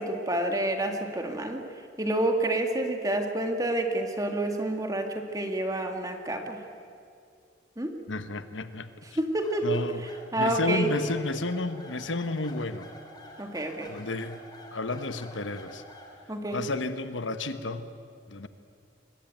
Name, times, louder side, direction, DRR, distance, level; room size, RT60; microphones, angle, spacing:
voice 1, 0.0-1.6 2.0-6.6 7.8-7.9 9.2-9.8 10.3-10.9 13.4-13.9 16.3-16.6, right 1 dB, 20° right, 4 dB, 2.0 m, -28 dB
voice 2, 8.1-8.9 9.6-10.1 10.4-12.9 13.9-14.4 14.7-15.8 16.5-17.9 18.3-18.5, left 2 dB, 80° left, 11 dB, 1.2 m, -31 dB
sound 1, 9.4-16.2, left 1 dB, 20° left, 3.3 m, -48 dB
23.5 x 21.0 x 9.3 m, 2.4 s
head